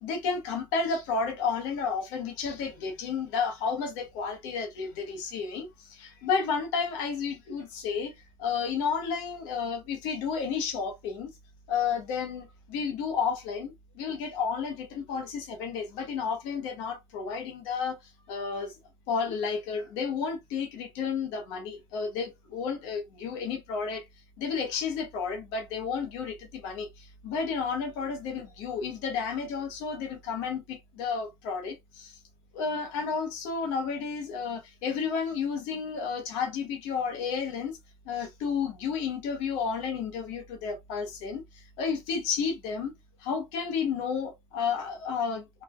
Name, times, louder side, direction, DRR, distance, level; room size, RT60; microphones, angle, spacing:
voice 1, 0.0-8.1 8.4-11.3 11.7-18.8 19.1-24.0 24.4-32.2 32.5-37.8 38.0-42.9 43.2-45.6, left 5 dB, 90° left, 0.9 m, -32 dB
3.0 x 2.2 x 2.3 m
supercardioid pair, 90°, 11 cm